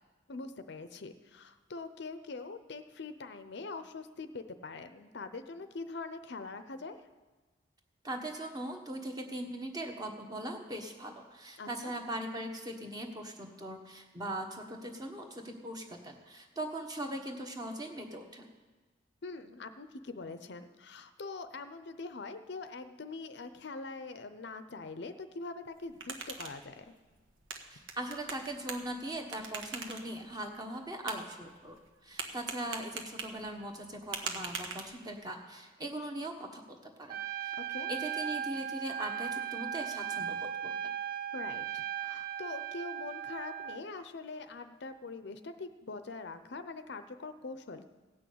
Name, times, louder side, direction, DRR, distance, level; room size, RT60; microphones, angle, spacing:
voice 1, 0.3-7.0 11.6-11.9 19.2-26.8 37.7-37.9 41.3-47.9, left 3 dB, 60° left, 10 dB, 0.6 m, -43 dB
voice 2, 8.0-18.5 27.7-37.5 37.9-40.9, right 1 dB, 20° right, 3 dB, 1.3 m, -40 dB
sound 1, 25.7-35.3, right 4 dB, 85° right, 1.3 m, -44 dB
Trumpet, 37.1-43.8, right 9 dB, 50° right, 0.3 m, -37 dB
16.5 x 6.2 x 8.5 m, 1.3 s
head